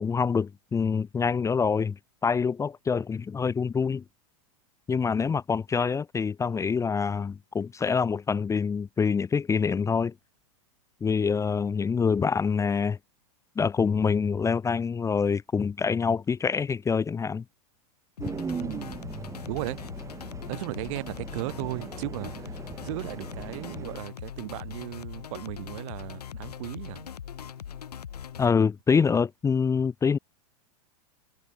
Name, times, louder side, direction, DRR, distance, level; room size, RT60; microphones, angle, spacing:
voice 1, 0.0-4.0 4.9-10.1 11.0-13.0 13.6-17.4 28.4-30.2, left 5 dB, 15° left, 1.0 m, -26 dB
sound 1, 18.2-28.5, left 8 dB, 90° left, 2.4 m, -41 dB
sound 2, 18.2-24.0, right 5 dB, 15° right, 6.0 m, -39 dB
voice 2, 18.6-18.9 19.5-19.8 20.5-22.5 22.8-27.1, right 23 dB, 55° right, 1.9 m, -36 dB
hypercardioid pair, 115°, 20 cm